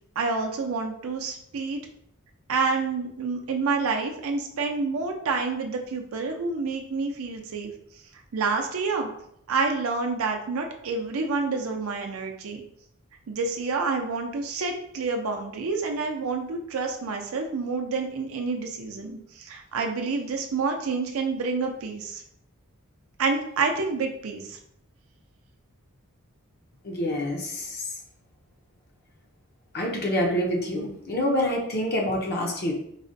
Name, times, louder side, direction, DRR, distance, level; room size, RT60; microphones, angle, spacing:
voice 1, 0.2-1.8 2.5-7.7 8.3-9.1 9.5-12.6 13.3-22.2 23.2-24.6, right 4 dB, 70° right, 3 dB, 0.5 m, -28 dB
voice 2, 26.8-27.9 29.7-32.7, left 1 dB, 45° left, 0 dB, 0.5 m, -27 dB
4.7 x 2.1 x 2.6 m, 0.72 s
head